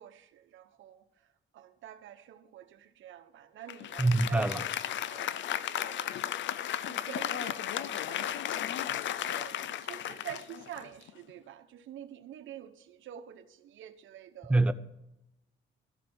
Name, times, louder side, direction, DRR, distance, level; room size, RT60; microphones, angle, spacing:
voice 1, 0.0-4.6 4.8-6.2 6.8-9.0 9.2-14.7, right 11 dB, 75° right, 1.1 m, -48 dB
Applause, 3.7-11.3, left 11 dB, 70° left, 0.6 m, -35 dB
voice 2, 4.0-4.6 14.5-14.7, right 2 dB, 5° right, 0.7 m, -24 dB
14.0 x 6.7 x 7.9 m
cardioid pair, 90°, 20 cm